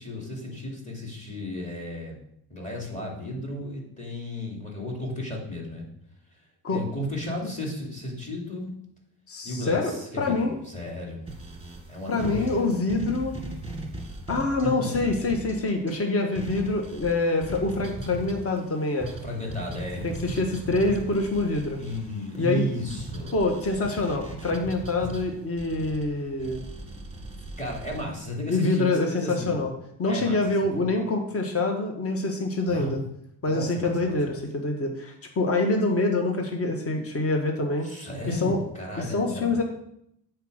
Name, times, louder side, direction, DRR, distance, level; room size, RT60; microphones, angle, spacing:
voice 1, 0.0-2.2 2.5-5.9 6.7-8.7 9.4-11.2 11.9-12.6 14.6-15.1 19.2-20.1 21.8-23.3 25.0-25.1 27.6-29.5 30.0-30.4 30.7-30.9 32.7-33.0 33.4-34.4 37.8-39.6, left 1 dB, 15° left, -2 dB, 3.0 m, -34 dB
voice 2, 9.3-10.5 12.1-13.4 14.3-19.1 20.0-21.8 22.4-22.7 23.3-26.6 28.5-29.7 30.0-33.0 33.4-37.9 38.3-38.6 39.0-39.6, left 2 dB, 35° left, 3 dB, 1.4 m, -26 dB
sound 1, 11.3-16.0 16.4-28.1, right 1 dB, 15° right, 1.7 m, -39 dB
8.1 x 4.8 x 6.4 m, 0.75 s
cardioid pair, 105°, 42 cm